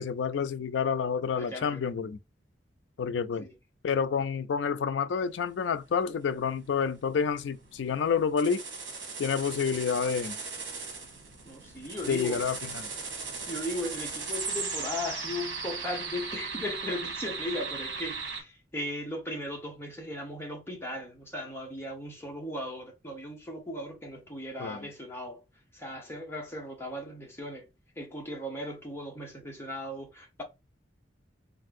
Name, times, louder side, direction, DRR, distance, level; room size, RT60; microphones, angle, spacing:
voice 1, 0.0-2.2 3.0-3.5 3.8-8.6 9.2-10.4 12.1-12.9 24.6-24.9, left 6 dB, 75° left, 0.4 m, -29 dB
voice 2, 1.4-1.8 3.4-3.5 11.4-12.5 13.5-25.4 25.7-27.7 28.0-30.4, left 1 dB, 15° left, 0.9 m, -37 dB
sound 1, 5.5-18.4, right 4 dB, 80° right, 1.1 m, -38 dB
3.4 x 2.5 x 2.5 m
head